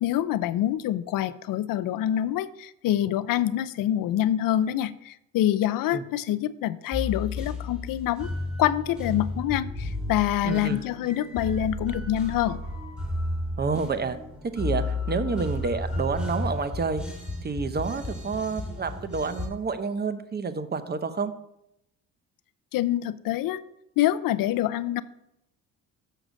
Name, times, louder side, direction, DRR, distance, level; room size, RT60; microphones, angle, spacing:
voice 1, 0.0-8.3 8.6-12.6 22.7-23.6 24.0-25.0, left 12 dB, 70° left, 15 dB, 0.6 m, -26 dB
sound 1, 6.9-19.5, left 2 dB, 5° right, 2.1 m, -33 dB
voice 2, 10.4-10.8 13.6-14.2 14.5-17.0 17.4-21.3, right 5 dB, 30° right, 11 dB, 0.8 m, -29 dB
6.5 x 6.5 x 6.3 m, 0.82 s
cardioid pair, 100°, 35 cm